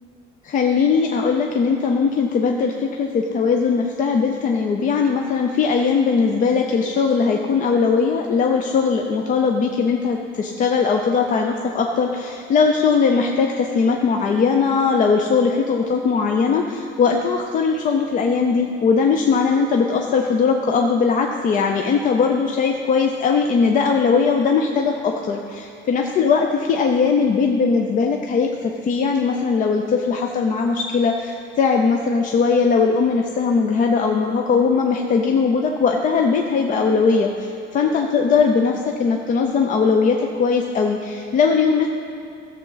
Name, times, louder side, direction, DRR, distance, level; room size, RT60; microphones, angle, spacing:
voice 1, 0.4-41.9, left 5 dB, 40° left, 2 dB, 0.5 m, -19 dB
15.0 x 7.1 x 3.9 m, 2.5 s
cardioid pair, 170°, 21 cm